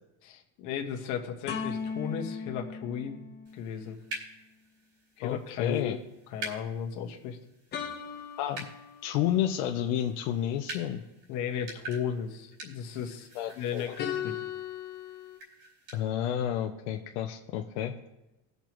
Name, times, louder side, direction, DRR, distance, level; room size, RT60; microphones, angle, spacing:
voice 1, 0.2-3.2 3.5-4.0 5.2-6.0 6.3-7.4 11.3-13.3 13.6-14.3, left 7 dB, 60° left, 3 dB, 1.4 m, -35 dB
sound 1, 1.5-4.0 7.7-9.5 14.0-15.4, left 7 dB, 30° left, 0.9 m, -38 dB
sound 2, 3.4-16.0, right 2 dB, 45° right, 3.0 m, -47 dB
voice 2, 5.2-6.0 8.4-8.7 9.0-11.0 13.3-13.9 15.9-17.9, left 11 dB, 85° left, 3 dB, 0.8 m, -30 dB
19.0 x 6.7 x 3.1 m, 0.94 s
cardioid pair, 165°, 33 cm